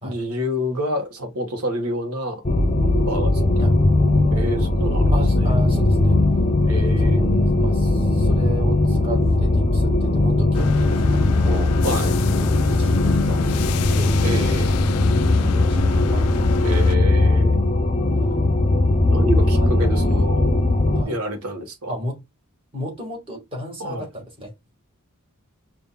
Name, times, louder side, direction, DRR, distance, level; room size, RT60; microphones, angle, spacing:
voice 1, 0.0-2.4 3.0-3.7 4.3-5.5 6.6-7.5 11.8-12.1 14.2-14.8 16.6-17.5 19.1-20.5 21.0-22.0 23.8-24.1, equal, 80° right, 1.1 m, -28 dB
sound 1, 2.4-21.0, left 2 dB, 30° left, 0.6 m, -19 dB
voice 2, 5.1-6.2 7.0-11.7 12.3-14.2 15.3-16.3 18.2-18.4 19.4-20.3 20.9-21.2 21.9-22.2 22.7-24.5, equal, 25° right, 1.7 m, -33 dB
sound 2, 10.5-17.0, left 8 dB, 85° left, 0.3 m, -30 dB
5.2 x 2.5 x 2.3 m
head